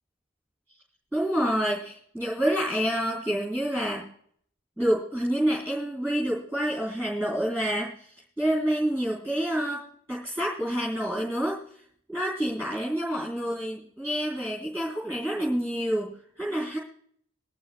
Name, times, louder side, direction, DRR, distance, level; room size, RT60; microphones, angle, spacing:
voice 1, 1.1-4.1 4.8-7.9 8.4-9.8 10.1-11.6 12.1-16.1 16.4-16.8, equal, 5° left, -4 dB, 3.3 m, -28 dB
22.5 x 11.5 x 2.3 m, 0.63 s
head